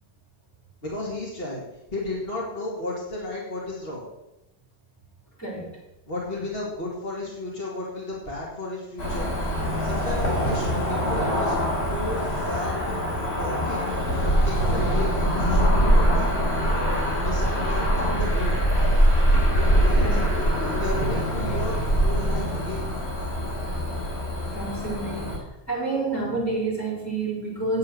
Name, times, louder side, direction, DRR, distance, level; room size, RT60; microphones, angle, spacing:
voice 1, 0.8-1.6 1.9-4.0 6.1-9.3 9.8-11.6 11.9-18.6 19.6-20.1 20.5-22.9, left 2 dB, 65° left, -4 dB, 2.6 m, -34 dB
voice 2, 5.4-5.7 20.0-20.2 24.5-25.4 25.7-27.8, right 3 dB, 15° left, -6 dB, 4.3 m, -28 dB
Cricket / Motor vehicle (road), 9.0-25.4, equal, 90° left, 3.3 m, -23 dB
9.8 x 7.3 x 6.6 m, 0.95 s
omnidirectional pair, 1.1 m